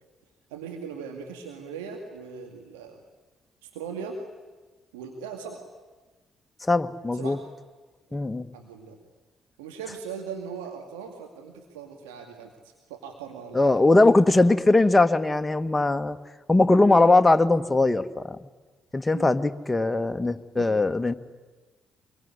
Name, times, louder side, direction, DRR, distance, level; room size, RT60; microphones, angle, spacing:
voice 1, 0.5-3.0 3.6-4.2 4.9-5.6 7.1-7.4 8.1-8.2 8.5-9.0 9.6-13.7 19.1-19.3 20.5-20.7, right 6 dB, 85° right, 3 dB, 2.3 m, -39 dB
voice 2, 6.7-7.4 8.1-8.5 13.5-16.2 16.5-18.4 18.9-21.1, left 2 dB, 20° left, 8 dB, 1.6 m, -20 dB
26.0 x 22.5 x 10.0 m, 1.3 s
hypercardioid pair, 45°, 0 cm